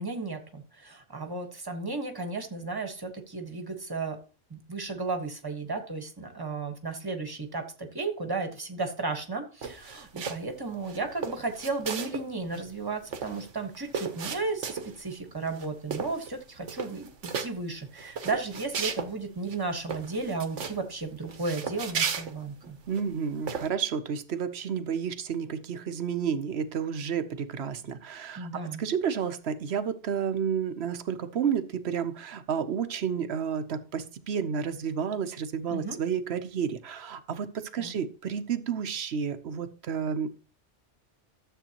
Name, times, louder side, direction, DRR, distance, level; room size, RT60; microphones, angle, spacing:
voice 1, 0.0-4.2 4.5-22.8 28.4-28.8 35.7-36.0 37.8-37.9, right 3 dB, 20° right, 1.3 m, -34 dB
sound 1, 9.6-10.5 10.8-12.3 12.5-12.6 12.9-15.1 15.5-15.7 15.9-16.4 16.6-17.5 18.0-19.1 19.5-19.6 19.9-20.8 21.3-23.0 23.5-23.7, right 6 dB, 85° right, 1.3 m, -34 dB
voice 2, 22.9-28.5 28.8-40.3, right 7 dB, 65° right, 1.0 m, -31 dB
12.5 x 7.6 x 2.9 m
omnidirectional pair, 1.2 m